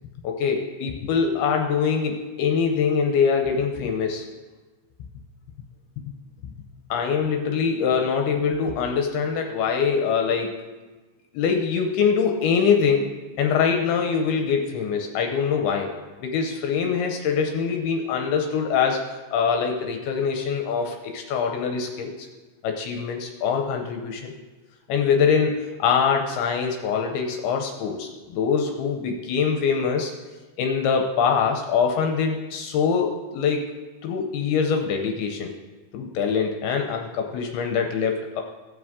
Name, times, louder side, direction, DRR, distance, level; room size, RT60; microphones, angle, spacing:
voice 1, 0.2-4.3 6.9-10.6 11.3-13.1 13.4-15.9 16.2-19.0 19.3-22.3 22.6-24.3 24.9-30.1 30.6-33.7 34.0-35.5 35.9-38.4, left 6 dB, 80° left, 3 dB, 2.4 m, -23 dB
16.0 x 6.2 x 3.6 m, 1.2 s
omnidirectional pair, 5.0 m